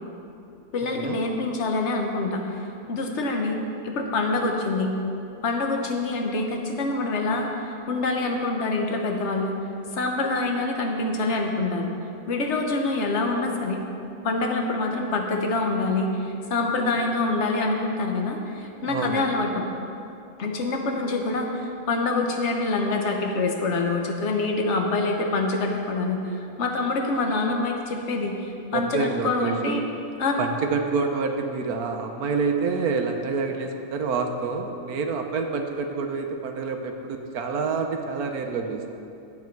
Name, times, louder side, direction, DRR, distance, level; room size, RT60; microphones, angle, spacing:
voice 1, 0.7-3.6 3.8-4.9 5.4-9.6 9.9-11.9 12.3-13.8 14.2-19.7 20.4-26.2 26.6-29.9 30.2-30.4, left 3 dB, 50° left, 2 dB, 1.3 m, -26 dB
voice 2, 18.9-19.3 28.7-29.8 30.4-38.9, right 4 dB, 80° right, 4 dB, 1.3 m, -27 dB
12.0 x 8.2 x 4.6 m, 2.7 s
omnidirectional pair, 1.6 m